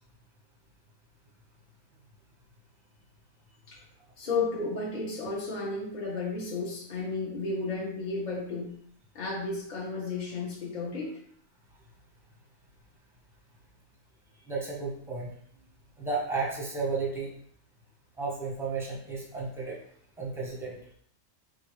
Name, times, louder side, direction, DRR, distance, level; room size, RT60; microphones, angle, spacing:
voice 1, 4.2-8.7 9.1-11.2, left 3 dB, 35° left, -4 dB, 1.2 m, -33 dB
voice 2, 14.5-15.3 16.0-17.3 18.2-19.8 20.2-20.8, right 4 dB, ahead, -3 dB, 0.8 m, -33 dB
4.9 x 2.6 x 3.1 m, 0.64 s
omnidirectional pair, 1.4 m